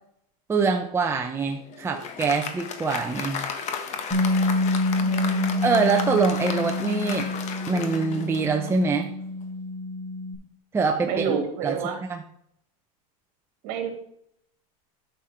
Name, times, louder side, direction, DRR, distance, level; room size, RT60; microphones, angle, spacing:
voice 1, 0.5-3.4 5.6-7.3 7.7-9.1 10.7-11.8 12.1-12.2, right 4 dB, 15° right, 3 dB, 0.7 m, -24 dB
Applause, 1.4-8.9, left 6 dB, 35° left, 1.3 m, -34 dB
Bass guitar, 4.1-10.4, left 2 dB, 15° left, 3.9 m, -27 dB
voice 2, 5.0-5.6 11.0-12.0 13.6-13.9, right 6 dB, 55° right, 4 dB, 2.8 m, -29 dB
9.0 x 6.6 x 4.4 m, 0.70 s
supercardioid pair, 135°, 19 cm